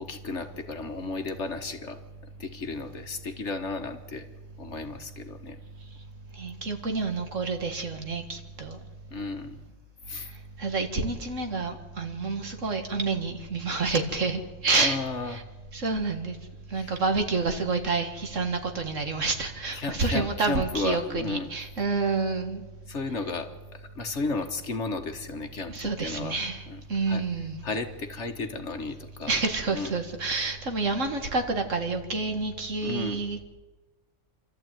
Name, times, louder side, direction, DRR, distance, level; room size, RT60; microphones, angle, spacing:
voice 1, 0.0-2.0 2.4-4.3 4.6-5.6 9.1-9.6 10.1-10.3 14.8-15.4 16.7-17.0 19.7-21.5 22.9-26.4 26.7-26.8 27.1-27.2 27.6-29.4 29.7-29.9 32.8-33.2, left 3 dB, 60° left, 7 dB, 1.8 m, -33 dB
voice 2, 6.4-8.8 10.6-15.0 15.3-15.4 15.7-16.3 16.7-22.6 25.7-26.6 26.9-27.6 29.3-33.4, right 3 dB, 65° right, 5 dB, 2.4 m, -28 dB
27.0 x 13.0 x 9.1 m, 1.2 s
omnidirectional pair, 1.4 m